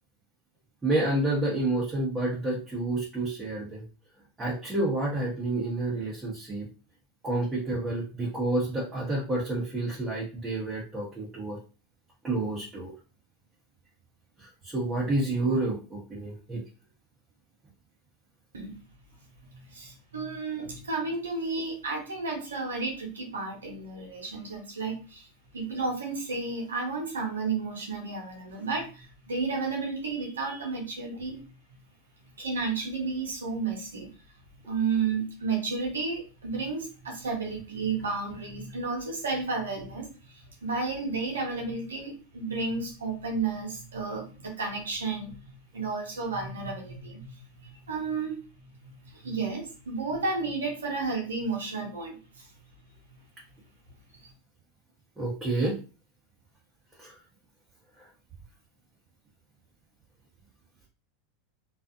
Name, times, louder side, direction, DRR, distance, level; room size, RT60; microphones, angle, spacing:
voice 1, 0.8-3.8 4.4-6.7 7.2-11.6 12.2-12.9 14.4-16.6 55.2-55.8 57.0-57.1, right 2 dB, 15° right, -5 dB, 0.9 m, -29 dB
voice 2, 19.4-25.3 25.5-31.5 32.4-34.1 34.7-48.4 49.0-52.5 54.1-54.2, right 4 dB, 90° right, 0 dB, 0.8 m, -32 dB
2.4 x 2.4 x 2.6 m, 0.34 s
hypercardioid pair, 95°, 0 cm